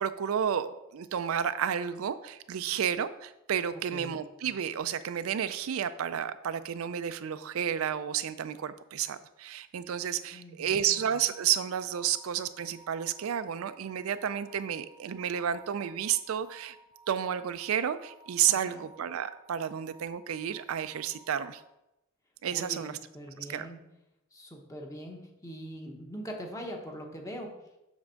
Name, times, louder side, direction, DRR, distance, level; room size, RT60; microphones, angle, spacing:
voice 1, 0.0-16.8 17.1-21.6 22.4-23.0 23.4-23.7, right 9 dB, 80° right, 12 dB, 0.4 m, -31 dB
voice 2, 10.3-11.0 18.5-18.8 22.5-23.8 24.3-27.5, equal, 15° left, 1 dB, 1.0 m, -42 dB
sound 1, 10.8-21.7, right 3 dB, 20° right, 0.6 m, -58 dB
7.3 x 3.5 x 6.3 m, 0.91 s
head